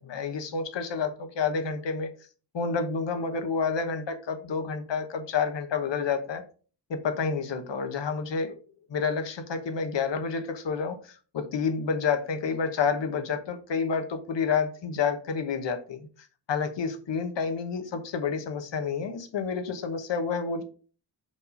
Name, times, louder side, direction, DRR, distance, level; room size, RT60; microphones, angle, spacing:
voice 1, 0.0-2.1 2.5-6.4 6.9-8.6 8.9-16.1 16.5-20.6, left 5 dB, 90° left, 8 dB, 1.0 m, -29 dB
5.1 x 4.1 x 5.1 m, 0.40 s
wide cardioid pair, 110°, 42 cm